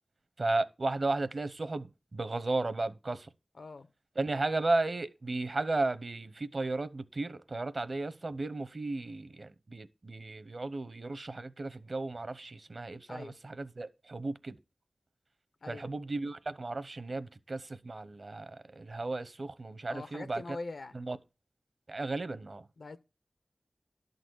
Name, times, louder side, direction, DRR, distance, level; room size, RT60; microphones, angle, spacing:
voice 1, 0.4-3.3 4.2-14.6 15.7-20.4 20.9-21.2 21.9-22.7, right 2 dB, 60° right, 0.8 m, -34 dB
voice 2, 3.5-3.9 13.1-13.4 15.6-15.9 19.9-20.9 22.8-23.0, left 3 dB, 90° left, 1.0 m, -43 dB
11.5 x 4.0 x 7.9 m
wide cardioid pair, 70°, 0 cm